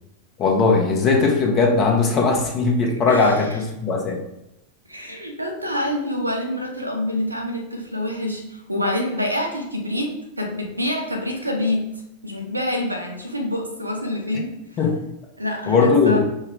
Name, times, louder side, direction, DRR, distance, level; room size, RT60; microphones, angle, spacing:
voice 1, 0.4-4.2 14.8-14.9 15.7-16.2, left 4 dB, 30° left, 2 dB, 0.9 m, -19 dB
voice 2, 3.1-3.4 4.9-11.8 12.2-14.5 15.4-16.2, left 1 dB, 85° right, 2 dB, 0.8 m, -26 dB
5.4 x 2.3 x 3.7 m, 0.88 s
figure-of-eight pair, 90°, 0 cm